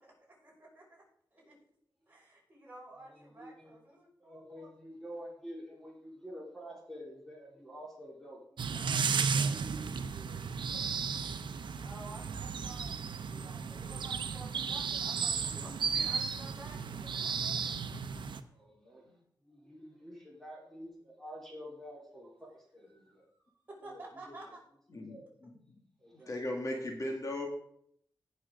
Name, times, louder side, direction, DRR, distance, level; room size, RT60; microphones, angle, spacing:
voice 1, 0.0-1.0 1.3-1.5 2.1-4.7 11.8-17.8 22.9-24.6, right 2 dB, 25° right, -5 dB, 5.7 m, -52 dB
voice 2, 3.1-3.7 4.2-11.2 18.5-19.1 19.4-23.3 23.8-24.0 24.3-24.4 24.9-25.3 26.0-26.3, equal, 5° left, -3 dB, 3.9 m, -49 dB
sound 1, 8.6-18.4, right 5 dB, 90° right, 0.7 m, -34 dB
voice 3, 26.3-27.5, left 1 dB, 45° left, 1 dB, 1.8 m, -36 dB
18.5 x 6.4 x 3.8 m, 0.69 s
wide cardioid pair, 120°, 8 cm